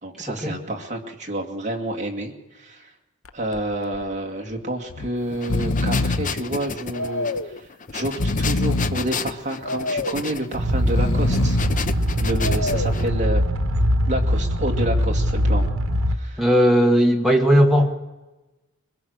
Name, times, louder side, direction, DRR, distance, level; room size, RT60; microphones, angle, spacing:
voice 1, 0.0-2.9 3.3-11.6 12.2-13.5 14.1-15.7 16.1-16.4, right 1 dB, 30° right, 2 dB, 2.3 m, -29 dB
Breathing, 3.3-3.6 3.9-4.0 4.9-5.1 5.3-6.4 6.9-7.6 8.0-9.1 9.6-10.3 10.8-11.8 12.4-13.0, left 2 dB, 65° left, 0.8 m, -25 dB
sound 1, 5.3-13.1, left 4 dB, 35° left, 0.8 m, -32 dB
sound 2, 10.5-16.2, equal, 70° right, 1.5 m, -22 dB
voice 2, 16.4-17.9, equal, ahead, 0 dB, 1.9 m, -17 dB
23.0 x 21.5 x 6.6 m, 1.1 s
head